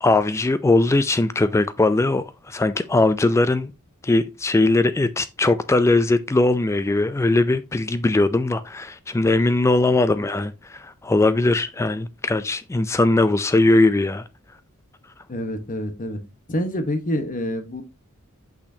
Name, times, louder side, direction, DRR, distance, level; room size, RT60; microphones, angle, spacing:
voice 1, 0.0-3.7 4.0-14.2, left 2 dB, 15° left, 0.3 m, -20 dB
voice 2, 15.3-16.2 16.5-17.8, equal, 40° left, 1.1 m, -27 dB
6.3 x 5.9 x 2.7 m
head